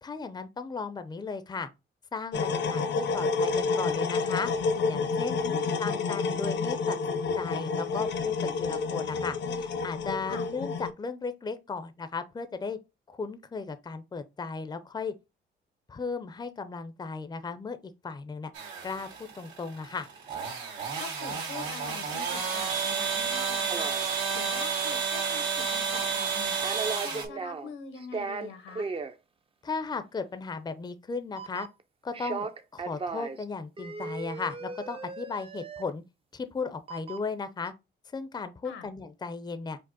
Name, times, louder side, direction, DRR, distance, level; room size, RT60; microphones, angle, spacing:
voice 1, 0.0-1.7 2.1-4.5 4.9-5.4 5.8-12.8 13.1-15.1 15.9-17.8 18.0-18.5 18.8-19.1 19.3-20.1 29.6-31.7 32.0-32.5 32.7-36.0 36.3-37.7 38.1-39.8, left 4 dB, 20° left, 0.6 m, -36 dB
sound 1, 2.3-10.9, left 4 dB, 60° left, 0.7 m, -29 dB
voice 2, 5.4-5.7 10.3-10.5 21.0-26.6 27.0-28.9 38.6-38.9, left 6 dB, 85° left, 1.1 m, -44 dB
sound 2, 18.5-27.2, right 6 dB, 85° right, 2.0 m, -31 dB
sound 3, 23.7-24.1 25.5-25.6 25.9-26.4 26.6-27.7 28.0-29.1 31.4-31.8 32.1-33.4 33.8-35.9 36.9-37.3 37.7-37.8, right 4 dB, 30° right, 0.6 m, -36 dB
5.1 x 2.0 x 4.0 m
cardioid pair, 90°, 20 cm